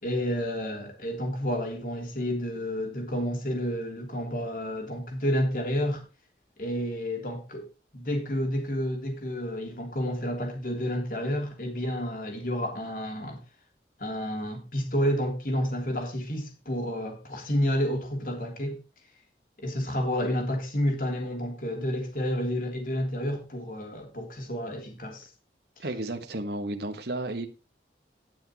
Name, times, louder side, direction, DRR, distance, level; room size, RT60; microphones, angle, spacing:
voice 1, 0.0-6.0 6.6-7.7 7.9-13.4 14.0-18.8 19.6-25.3, equal, 50° left, 3.3 m, -30 dB
voice 2, 25.8-27.5, right 1 dB, 65° right, 1.4 m, -32 dB
19.0 x 6.3 x 3.0 m
head